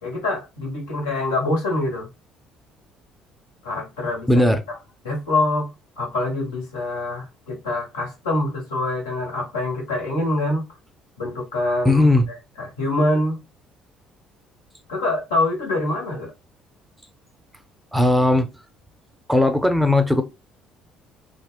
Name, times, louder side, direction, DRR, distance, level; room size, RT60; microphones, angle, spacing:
voice 1, 0.0-2.1 3.6-4.8 5.0-5.7 6.0-10.6 11.2-13.4 14.9-16.3, left 2 dB, 80° left, 1.2 m, -25 dB
voice 2, 4.3-4.6 11.9-12.3 17.9-18.5 19.3-20.2, left 1 dB, 5° right, 0.6 m, -17 dB
3.5 x 2.3 x 2.2 m
hypercardioid pair, 55°, 0 cm